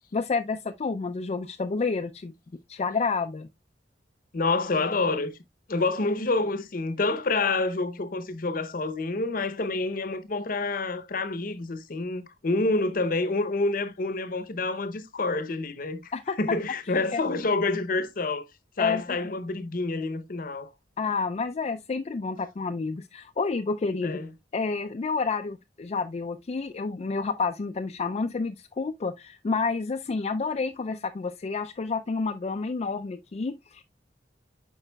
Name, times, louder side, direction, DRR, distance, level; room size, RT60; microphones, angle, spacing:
voice 1, 0.1-2.3 2.7-3.5 16.1-16.4 17.1-17.2 18.8-19.3 21.0-24.2 24.5-33.8, left 4 dB, 40° left, 0.4 m, -29 dB
voice 2, 4.3-5.4 5.7-16.1 16.4-18.5 18.8-20.7 24.0-24.3, left 3 dB, 55° left, 0.7 m, -28 dB
9.8 x 4.9 x 2.2 m
head